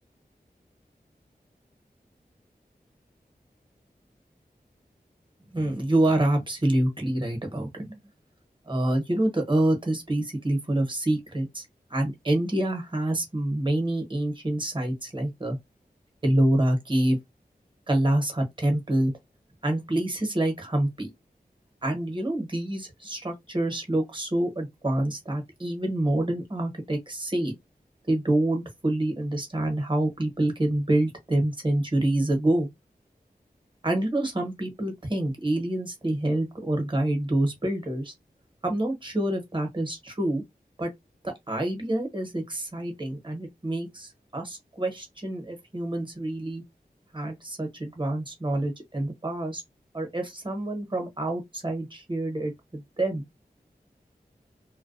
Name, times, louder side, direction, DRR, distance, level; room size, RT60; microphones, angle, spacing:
voice 1, 5.5-7.9 8.7-15.6 16.2-17.2 17.9-19.1 19.6-21.1 21.8-27.5 28.1-32.7 33.8-38.1 38.6-40.4 40.8-40.9 41.5-46.6 47.1-49.6 49.9-53.2, right 1 dB, 30° right, 1.0 m, -27 dB
2.2 x 2.1 x 2.6 m
wide cardioid pair, 60°, 16 cm